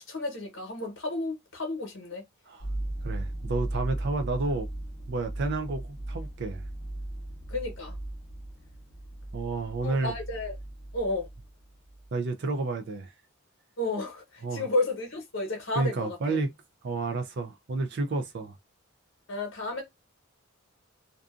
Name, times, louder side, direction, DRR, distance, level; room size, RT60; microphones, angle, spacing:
voice 1, 0.0-2.2 7.5-7.9 9.8-10.5 10.9-11.3 13.8-16.4 19.3-19.8, left 2 dB, 60° left, 1.0 m, -32 dB
sound 1, 2.6-11.6 11.9-12.1, right 1 dB, 15° left, 0.7 m, -37 dB
voice 2, 3.0-4.7 5.1-6.6 9.3-10.1 12.1-13.1 14.4-14.7 15.7-16.5 16.8-18.6, right 3 dB, 55° right, 0.4 m, -30 dB
2.6 x 2.4 x 2.4 m
head